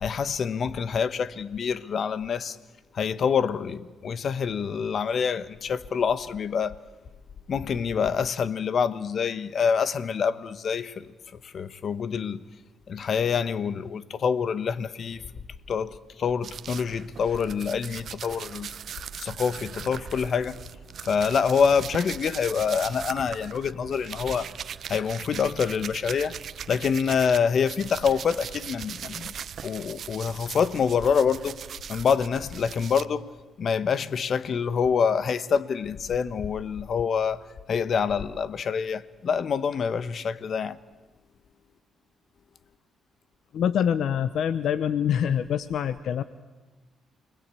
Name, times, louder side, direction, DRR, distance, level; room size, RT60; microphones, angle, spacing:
voice 1, 0.0-2.6 2.9-6.7 7.5-11.1 11.4-12.4 12.9-15.2 15.7-18.7 19.2-20.6 21.0-24.5 24.9-26.3 26.7-29.3 29.6-31.6 31.9-33.3 33.6-40.8, left 6 dB, 55° left, 1.1 m, -26 dB
sound 1, 16.4-27.4 27.7-33.1, right 8 dB, 60° right, 0.8 m, -39 dB
voice 2, 43.5-46.2, left 9 dB, 70° left, 0.9 m, -25 dB
29.0 x 20.5 x 8.4 m
cardioid pair, 90°, 0 cm